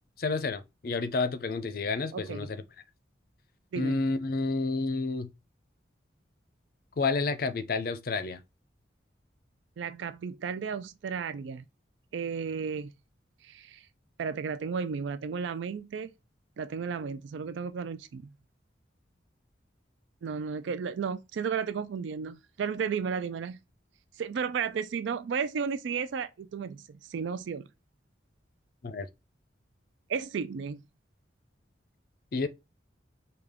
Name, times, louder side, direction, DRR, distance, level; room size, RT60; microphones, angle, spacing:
voice 1, 0.2-2.6 3.8-5.3 7.0-8.4 28.8-29.1 32.3-32.5, left 3 dB, 50° left, 0.5 m, -30 dB
voice 2, 2.1-2.5 3.7-4.0 9.8-11.6 12.1-12.9 13.4-13.9 14.2-16.1 16.6-18.3 20.2-23.6 24.2-26.8 27.1-27.6 30.1-30.8, right 6 dB, 80° right, 0.4 m, -33 dB
5.0 x 2.3 x 3.5 m
head